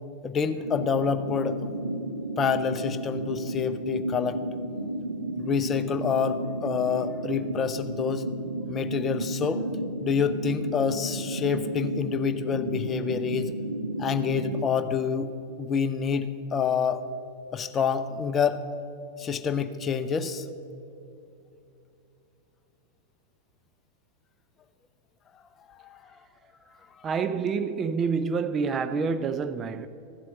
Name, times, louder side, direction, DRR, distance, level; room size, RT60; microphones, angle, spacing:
voice 1, 0.2-1.7 2.4-4.4 5.4-8.2 8.7-9.6 10.0-13.5 14.0-15.3 15.6-17.0 17.5-18.7 19.2-20.5 25.8-26.2, left 6 dB, 25° left, 0.7 m, -27 dB
sound 1, 0.6-14.7, right 1 dB, 80° right, 0.7 m, -33 dB
voice 2, 27.0-29.9, right 5 dB, 25° right, 0.4 m, -27 dB
15.5 x 7.5 x 6.5 m
figure-of-eight pair, 90°, 0 cm